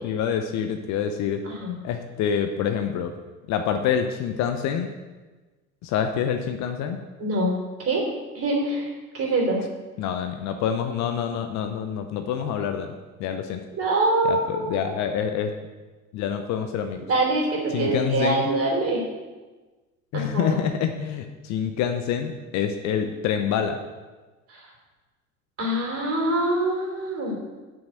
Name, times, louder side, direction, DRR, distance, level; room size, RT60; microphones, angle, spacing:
voice 1, 0.0-1.4 1.8-3.1 3.5-4.9 5.8-7.0 10.0-12.9 13.2-13.6 14.2-15.5 16.1-17.0 17.7-18.5 20.1-23.8, left 8 dB, 40° left, 7 dB, 0.8 m, -26 dB
voice 2, 1.4-1.8 7.2-7.5 7.8-8.0 8.3-9.6 13.8-14.9 17.1-19.0 20.1-20.6 24.5-24.6 25.6-27.3, right 2 dB, 35° right, -1 dB, 3.2 m, -24 dB
7.0 x 6.4 x 7.4 m, 1.3 s
figure-of-eight pair, 70°, 42 cm